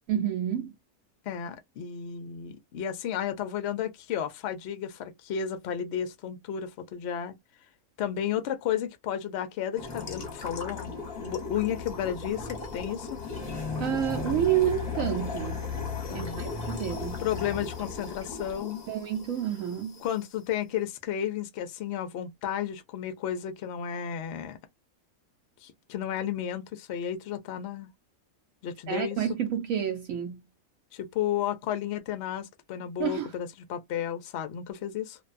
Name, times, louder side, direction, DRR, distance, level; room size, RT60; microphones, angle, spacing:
voice 1, 0.1-0.7 13.8-15.6 16.1-17.2 18.9-20.0 28.9-30.4 33.0-33.3, right 10 dB, 70° right, 0.9 m, -29 dB
voice 2, 1.3-7.4 8.0-10.9 11.2-13.2 16.1-16.4 17.2-18.8 20.0-24.6 25.6-27.9 28.6-29.2 30.9-35.2, left 9 dB, 65° left, 0.7 m, -33 dB
sound 1, 9.8-20.2, left 4 dB, 35° left, 0.9 m, -36 dB
2.6 x 2.2 x 2.4 m
omnidirectional pair, 1.6 m